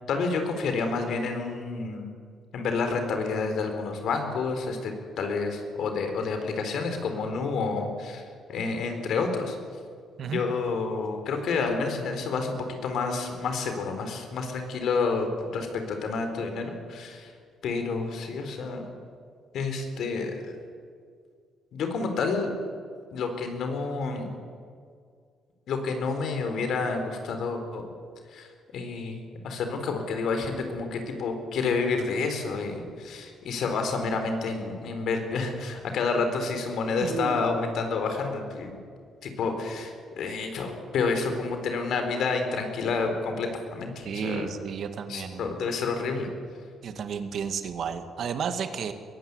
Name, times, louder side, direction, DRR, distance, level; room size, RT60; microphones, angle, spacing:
voice 1, 0.1-2.1 2.5-9.6 10.2-17.3 17.6-18.8 19.5-20.6 21.7-22.5 23.1-24.3 25.7-27.9 28.3-38.7 39.2-44.5 45.1-46.3, left 4 dB, 70° left, 6 dB, 4.2 m, -29 dB
voice 2, 37.0-37.4 44.1-45.5 46.8-48.9, right 6 dB, 65° right, 8 dB, 2.1 m, -32 dB
21.5 x 17.0 x 9.7 m, 2.1 s
cardioid pair, 90°, 0 cm